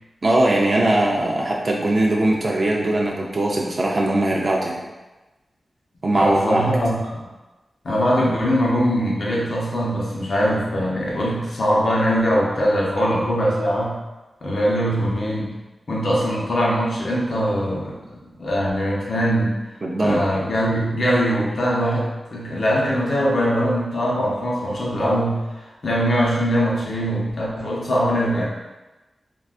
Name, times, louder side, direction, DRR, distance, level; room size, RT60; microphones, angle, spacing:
voice 1, 0.2-4.8 6.0-6.6 19.8-20.3, right 1 dB, 45° right, -2 dB, 0.4 m, -20 dB
voice 2, 6.1-7.2 7.8-14.0 14.4-15.5 15.9-18.0 18.4-19.6 20.0-25.4 25.8-28.4, equal, 70° left, -4 dB, 0.7 m, -21 dB
3.6 x 2.3 x 2.4 m, 1.1 s
wide cardioid pair, 105°, 0 cm